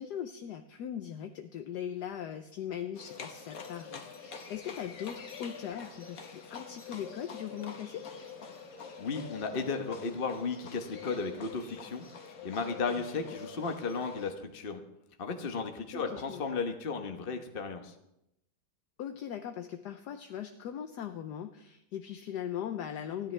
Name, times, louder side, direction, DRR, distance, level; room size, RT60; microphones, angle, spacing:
voice 1, 0.0-8.0 15.9-16.4 19.0-23.3, left 9 dB, 70° left, 7 dB, 1.2 m, -39 dB
Livestock farm animals working animals, 2.9-14.3, left 5 dB, 50° left, 1.7 m, -46 dB
voice 2, 9.0-12.0 12.4-14.8 15.2-17.9, left 4 dB, 35° left, 4 dB, 1.1 m, -34 dB
29.0 x 10.5 x 3.3 m, 0.84 s
omnidirectional pair, 2.0 m